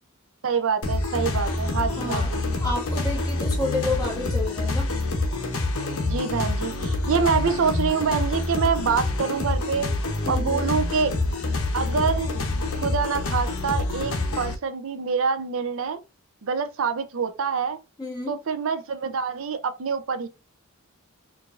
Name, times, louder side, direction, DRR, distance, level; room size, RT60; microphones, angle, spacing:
voice 1, 0.4-2.4 6.0-9.9 10.3-11.1 11.7-12.3 12.7-16.0 16.4-17.8 18.3-20.3, right 5 dB, 65° right, 0.5 m, -26 dB
sound 1, 0.8-14.6, left 2 dB, 75° left, 1.0 m, -26 dB
voice 2, 2.0-2.3 2.6-4.9 10.2-10.8 18.0-18.4, left 2 dB, 20° left, 1.3 m, -30 dB
4.6 x 2.5 x 2.5 m
head